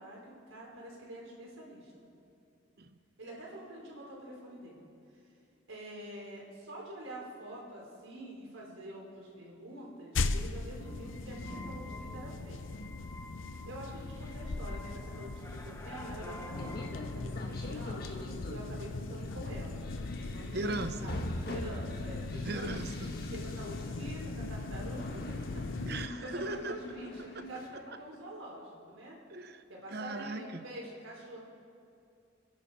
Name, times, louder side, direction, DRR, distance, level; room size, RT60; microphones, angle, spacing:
voice 1, 0.0-1.9 3.2-4.8 5.7-12.8 13.6-18.1 18.5-19.8 20.1-20.7 21.0-22.7 23.3-25.6 26.0-29.2 29.7-31.4, right 1 dB, 85° right, -3 dB, 4.4 m, -46 dB
sound 1, 10.1-26.1, left 3 dB, 75° left, 0.7 m, -39 dB
sound 2, 10.8-18.3, left 1 dB, 15° left, 1.0 m, -50 dB
sound 3, 16.5-27.7, left 1 dB, 50° left, 1.6 m, -44 dB
voice 2, 20.5-21.2 22.4-23.1 25.9-26.7 27.4-27.5 29.3-29.6 29.9-30.6, right 2 dB, 50° right, 9 dB, 0.9 m, -38 dB
29.0 x 11.0 x 4.3 m, 2.6 s
head